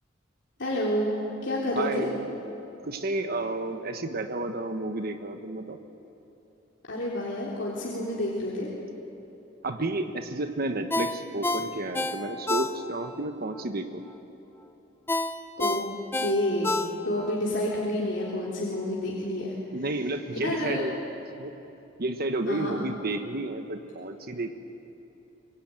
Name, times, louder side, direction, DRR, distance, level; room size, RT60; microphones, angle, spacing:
voice 1, 0.6-1.2 1.4-2.1 6.9-8.7 15.6-15.8 16.2-19.5 20.4-20.8 22.5-22.8, left 1 dB, 65° left, -5 dB, 3.5 m, -29 dB
voice 2, 1.7-2.2 2.8-5.8 9.6-14.0 19.7-20.9 21.4-21.6 22.0-24.5, right 2 dB, 50° right, 6 dB, 1.2 m, -31 dB
Ringtone, 10.9-13.2 13.5-13.6 15.1-17.3 17.7-17.8, left 2 dB, 10° left, 0.9 m, -29 dB
24.0 x 22.0 x 9.0 m, 3.0 s
head